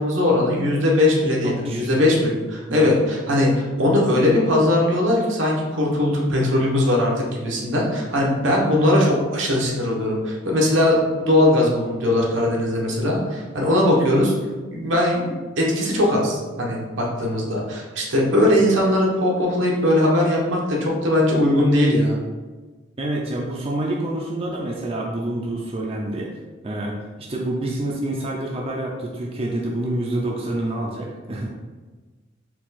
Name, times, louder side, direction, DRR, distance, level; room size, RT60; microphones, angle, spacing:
voice 1, 0.0-14.3 14.7-22.2, left 1 dB, 80° right, -2 dB, 1.0 m, -20 dB
voice 2, 1.4-1.9 2.7-3.0 23.0-26.3 26.6-27.0 27.3-31.6, right 1 dB, 30° right, -2 dB, 0.5 m, -27 dB
4.5 x 2.4 x 4.1 m, 1.3 s
head